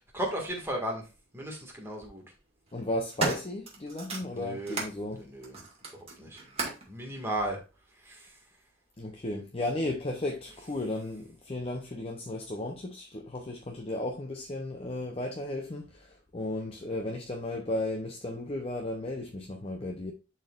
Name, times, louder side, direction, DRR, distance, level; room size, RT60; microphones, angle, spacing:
voice 1, 0.1-1.0 1.3-2.2 4.3-4.8 5.1-5.6 6.2-6.4 6.9-7.6 8.1-8.3, right 1 dB, 10° right, 1.8 m, -35 dB
sound 1, 0.5-0.7 1.8-2.1 2.7-5.0 5.4-6.9 7.8-7.9, right 3 dB, 30° right, 2.0 m, -35 dB
voice 2, 2.7-5.2 9.0-20.1, left 1 dB, 30° left, 0.7 m, -34 dB
10.5 x 4.3 x 2.5 m
head